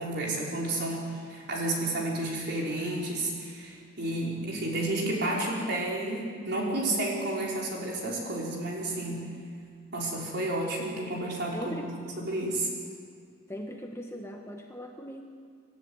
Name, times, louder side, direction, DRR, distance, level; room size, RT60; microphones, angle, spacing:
voice 1, 0.0-9.2 9.9-12.7, right 1 dB, 50° right, -3 dB, 5.6 m, -31 dB
voice 2, 11.5-12.1 13.5-15.2, equal, 15° left, 2 dB, 1.4 m, -39 dB
26.5 x 14.5 x 9.8 m, 2.2 s
head